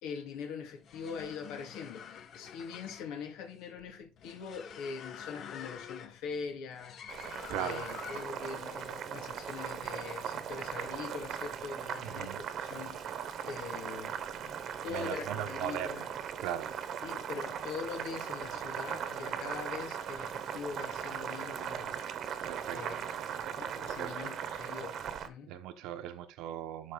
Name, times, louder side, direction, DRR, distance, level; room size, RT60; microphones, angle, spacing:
voice 1, 0.0-7.0 7.5-16.1 17.0-22.1 22.7-23.1 23.6-25.5, left 6 dB, 85° left, 2.2 m, -43 dB
sound 1, 0.7-8.5, left 8 dB, 50° left, 0.9 m, -47 dB
Boiling, 7.1-25.3, right 8 dB, 50° right, 1.0 m, -39 dB
voice 2, 7.5-7.9 12.0-12.4 14.9-16.1 16.4-16.7 22.5-23.0 23.9-24.2 25.5-26.9, right 11 dB, 80° right, 1.0 m, -39 dB
12.0 x 4.2 x 3.9 m
cardioid pair, 140°, 0 cm